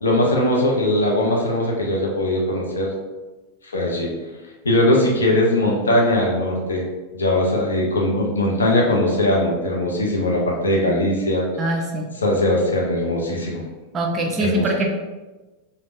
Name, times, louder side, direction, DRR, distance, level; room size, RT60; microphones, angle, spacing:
voice 1, 0.0-2.9 3.7-4.1 4.6-6.9 7.1-11.6 12.1-13.6 14.4-14.7, left 1 dB, 70° left, -1 dB, 0.6 m, -20 dB
voice 2, 11.6-12.1 13.9-14.9, right 1 dB, 25° right, 1 dB, 0.5 m, -22 dB
3.3 x 2.1 x 2.5 m, 1.2 s
figure-of-eight pair, 90°, 0 cm